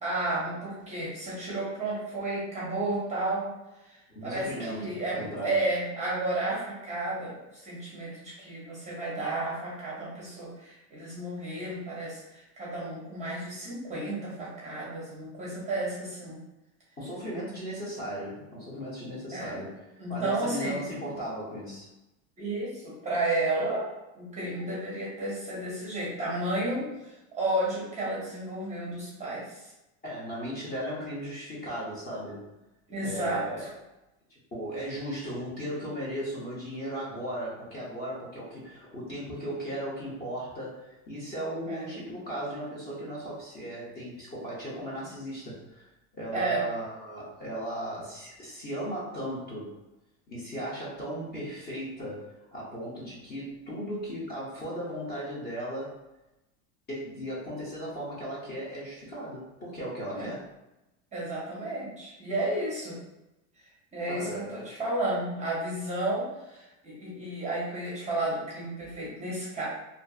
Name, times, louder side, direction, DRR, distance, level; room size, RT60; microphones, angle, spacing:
voice 1, 0.0-3.5 3.8-16.4 19.3-19.6 20.0-20.8 22.4-29.7 32.9-33.7 41.6-42.0 46.3-46.6 60.1-60.3 61.1-63.0 63.9-69.6, right 2 dB, 15° right, -6 dB, 0.6 m, -32 dB
voice 2, 4.1-5.7 17.0-19.8 20.1-21.9 30.0-32.5 33.0-33.7 34.5-45.9 46.1-49.7 50.3-56.0 56.9-60.4 64.1-64.5, equal, 25° left, -6 dB, 0.6 m, -36 dB
2.5 x 2.5 x 2.3 m, 0.97 s
supercardioid pair, 135°, 41 cm